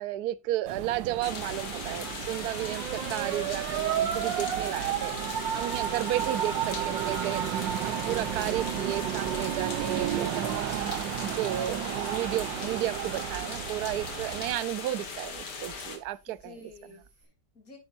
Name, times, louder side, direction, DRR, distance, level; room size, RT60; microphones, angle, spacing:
voice 1, 0.0-10.7 11.2-16.6, right 13 dB, 65° right, 1.1 m, -33 dB
sound 1, 0.7-14.6, right 11 dB, 85° right, 1.4 m, -32 dB
sound 2, 1.2-16.0, left 5 dB, 65° left, 2.3 m, -39 dB
voice 2, 2.9-3.4 16.3-17.8, left 4 dB, 50° left, 3.3 m, -51 dB
sound 3, 2.9-17.2, right 4 dB, 20° right, 3.8 m, -58 dB
10.0 x 9.7 x 2.6 m
omnidirectional pair, 2.0 m